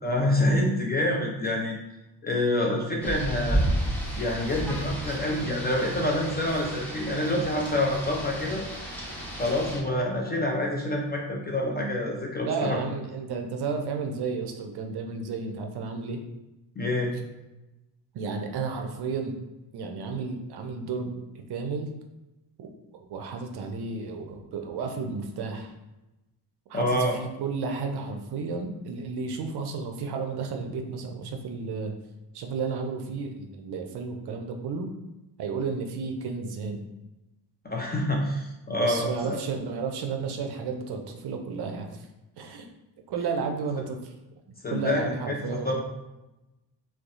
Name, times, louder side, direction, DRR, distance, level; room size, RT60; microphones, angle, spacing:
voice 1, 0.0-1.8 2.2-3.6 4.2-8.6 9.4-12.8 16.8-17.1 26.7-27.2 37.6-39.4 44.6-45.8, left 1 dB, 20° left, -1 dB, 0.4 m, -27 dB
Rain, 3.0-9.8, right 1 dB, 5° left, 0.8 m, -32 dB
voice 2, 12.4-16.2 18.1-19.4 19.7-21.9 22.6-22.7 22.9-25.7 26.7-31.9 32.3-34.9 35.4-36.8 38.8-42.1 42.4-42.7 43.1-44.1 44.7-45.8, right 5 dB, 55° right, 4 dB, 0.5 m, -32 dB
2.7 x 2.0 x 2.4 m, 0.99 s
supercardioid pair, 55°, 49 cm